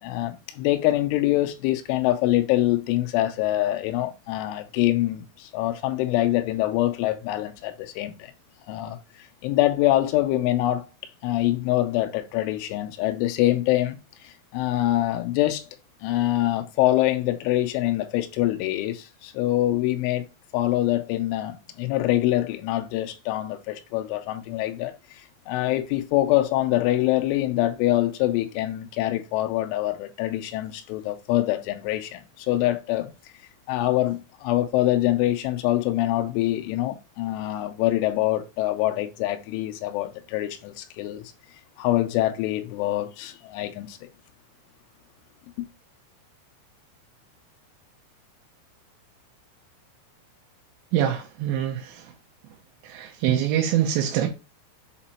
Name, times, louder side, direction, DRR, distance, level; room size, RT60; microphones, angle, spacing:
voice 1, 0.0-8.3 8.7-10.9 11.2-14.0 14.2-15.7 16.0-20.2 20.5-24.9 25.5-33.1 33.7-41.3 41.8-44.1, left 15 dB, 90° left, 3.1 m, -25 dB
voice 2, 50.9-52.1 52.8-54.3, right 10 dB, 90° right, 3.2 m, -24 dB
7.7 x 3.0 x 4.2 m
omnidirectional pair, 5.4 m